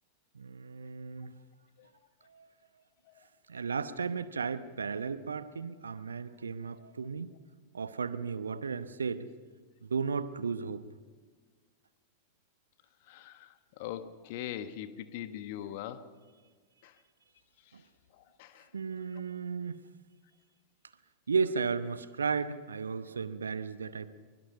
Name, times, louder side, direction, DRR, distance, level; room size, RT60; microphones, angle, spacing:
voice 1, 0.3-1.3 2.3-2.5 3.5-7.3 7.7-9.3 9.8-10.8 17.7-17.8 18.7-19.8 21.3-24.2, right 5 dB, 70° right, 14 dB, 0.9 m, -34 dB
voice 2, 13.1-16.1 16.8-16.9 18.4-18.7, left 11 dB, 50° left, 11 dB, 1.4 m, -41 dB
23.5 x 21.5 x 5.6 m, 1.5 s
figure-of-eight pair, 90°, 0 cm